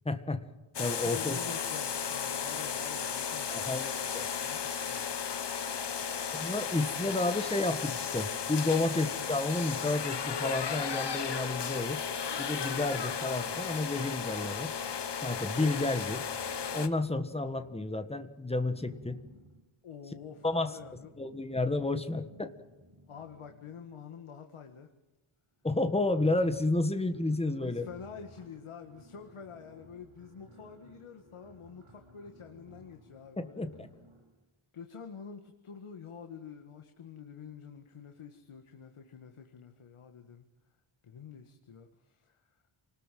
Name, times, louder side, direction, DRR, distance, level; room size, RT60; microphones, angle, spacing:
voice 1, 0.0-0.4 0.8-1.4 3.5-4.2 6.3-12.0 12.4-14.7 15.2-16.2 16.7-19.2 20.4-20.7 21.2-22.5 25.6-27.9 33.4-33.9, left 2 dB, 10° left, 9 dB, 1.6 m, -31 dB
sound 1, 0.7-16.9, left 7 dB, 55° left, 1.5 m, -35 dB
voice 2, 0.9-6.3 19.1-19.2 19.8-21.4 23.1-24.9 27.6-33.7 34.7-40.5 41.0-42.6, left 6 dB, 80° left, 6 dB, 2.0 m, -48 dB
sound 2, 16.3-18.1 18.5-24.2 25.2-25.3 25.5-34.4, equal, 90° right, 7.6 m, -57 dB
28.5 x 19.5 x 7.7 m, 1.1 s
wide cardioid pair, 165°, 50 cm